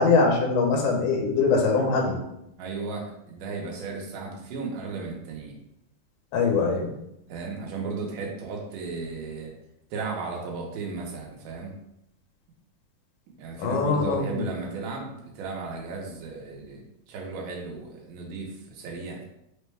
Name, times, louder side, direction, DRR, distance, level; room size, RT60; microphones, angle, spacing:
voice 1, 0.0-2.2 6.3-6.9 13.6-14.5, left 4 dB, 75° left, 0 dB, 2.0 m, -22 dB
voice 2, 2.6-5.5 7.3-9.5 9.9-11.7 13.3-19.3, right 4 dB, 80° right, -1 dB, 2.3 m, -35 dB
5.3 x 2.1 x 3.3 m, 0.82 s
omnidirectional pair, 3.8 m